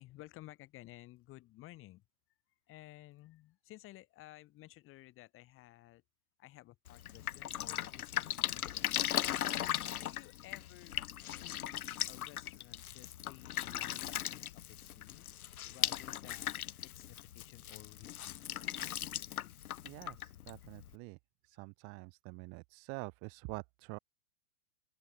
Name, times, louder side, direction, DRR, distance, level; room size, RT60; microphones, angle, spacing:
voice 1, 0.0-2.0 2.7-6.0 6.4-9.2 9.7-11.0 11.3-15.3 15.6-18.7 21.5-21.7, left 17 dB, 30° left, 2.1 m, -56 dB
Drip, 6.9-20.9, left 12 dB, 80° left, 0.9 m, -38 dB
voice 2, 19.8-21.2 21.5-24.0, right 33 dB, 30° right, 0.9 m, -46 dB
open air
hypercardioid pair, 125°, 43 cm